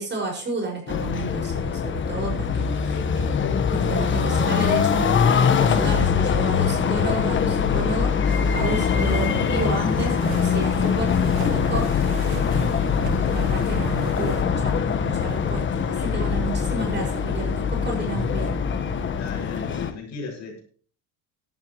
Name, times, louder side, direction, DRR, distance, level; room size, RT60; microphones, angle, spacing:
voice 1, 0.0-3.4 3.7-11.9 12.2-12.9 13.3-18.6, right 3 dB, 30° right, 1 dB, 5.8 m, -32 dB
sound 1, 0.9-19.9, left 6 dB, 30° left, 1.3 m, -23 dB
sound 2, 8.2-14.4, right 6 dB, 80° right, 2.3 m, -38 dB
voice 2, 19.2-20.6, left 5 dB, 50° left, 1 dB, 6.4 m, -36 dB
17.0 x 11.5 x 3.1 m, 0.44 s
cardioid pair, 145°, 36 cm